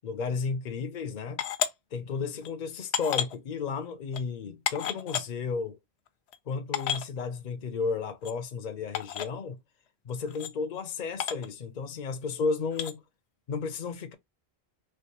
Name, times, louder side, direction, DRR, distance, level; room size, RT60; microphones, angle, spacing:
voice 1, 0.0-1.4 1.9-5.8 6.5-9.6 10.0-13.0 13.5-14.1, left 5 dB, 55° left, 0.6 m, -33 dB
sound 1, 1.4-1.7 2.4-2.5 2.9-3.4 4.1-4.2 4.7-5.2 6.1-6.2 6.3-6.4 6.7-7.1 8.2-8.3 8.9-9.3 10.3-10.5 11.2-11.5 12.7-12.9, left 9 dB, 90° left, 0.9 m, -31 dB
3.4 x 3.1 x 2.8 m
omnidirectional pair, 1.1 m